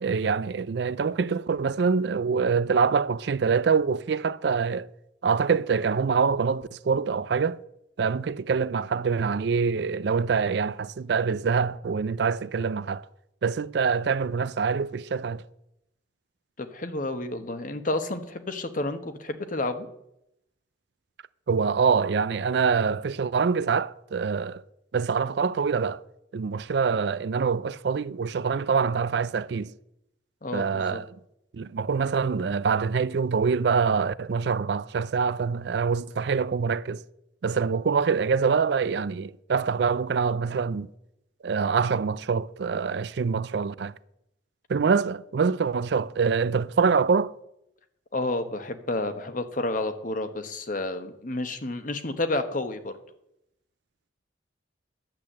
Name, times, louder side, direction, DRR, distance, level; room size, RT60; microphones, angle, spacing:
voice 1, 0.0-4.9 5.2-7.6 8.0-13.0 13.4-15.4 21.5-24.6 24.9-26.0 26.3-29.7 30.5-31.1 31.5-37.0 37.4-40.9 41.4-43.9 44.7-47.3, right 5 dB, 60° right, 0.4 m, -25 dB
voice 2, 16.6-19.9 30.4-31.0 48.1-52.9, left 2 dB, 45° left, 1.1 m, -30 dB
10.5 x 8.4 x 7.4 m
head